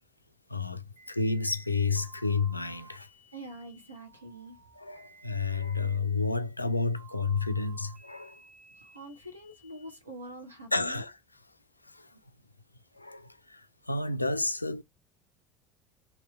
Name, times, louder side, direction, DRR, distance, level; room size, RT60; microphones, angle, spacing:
voice 1, 0.5-3.1 4.8-8.4 10.7-11.1 11.8-12.1 12.9-14.8, left 4 dB, 90° left, 0.3 m, -31 dB
sound 1, 1.0-10.0, right 5 dB, 65° right, 1.7 m, -56 dB
voice 2, 3.3-4.6 8.8-11.0, right 1 dB, 90° right, 0.9 m, -45 dB
3.0 x 2.7 x 3.1 m
figure-of-eight pair, 65°, 0 cm